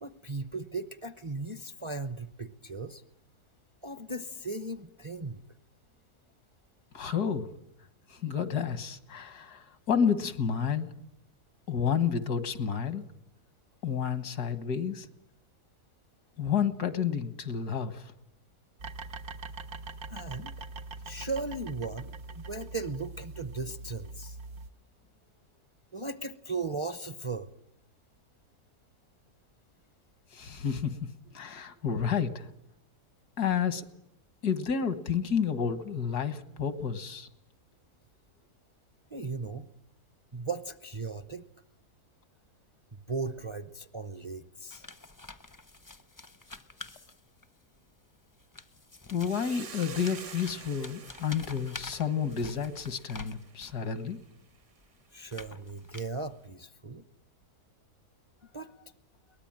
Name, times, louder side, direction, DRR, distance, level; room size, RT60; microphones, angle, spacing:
voice 1, 0.0-3.0 3.8-5.4 20.1-20.5 21.0-24.4 25.9-27.5 39.1-39.7 40.3-41.4 42.9-44.9 55.1-57.0 58.5-58.7, right 3 dB, 25° right, 11 dB, 0.7 m, -37 dB
voice 2, 6.9-7.5 8.1-10.9 11.7-13.0 13.8-15.1 16.4-18.1 30.3-31.0 31.3-32.5 33.4-33.9 34.4-37.3 49.1-54.2, left 7 dB, 85° left, 11 dB, 2.0 m, -30 dB
sound 1, 18.8-24.7, right 3 dB, 75° right, 1.8 m, -43 dB
sound 2, 44.7-47.6 48.3-53.9 54.5-56.4, left 2 dB, 20° left, 0.6 m, -48 dB
Hiss, 49.2-53.7, right 7 dB, 55° right, 1.3 m, -48 dB
22.5 x 19.5 x 8.9 m, 0.82 s
omnidirectional pair, 1.6 m